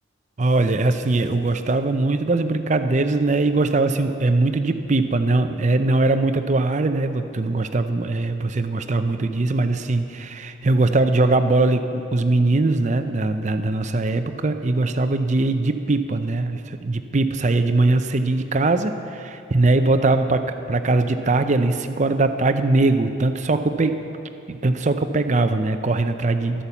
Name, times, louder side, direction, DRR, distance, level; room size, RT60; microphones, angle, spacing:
voice 1, 0.4-24.0 24.5-26.6, right 2 dB, 35° right, 9 dB, 0.5 m, -21 dB
11.5 x 11.0 x 7.1 m, 2.8 s
head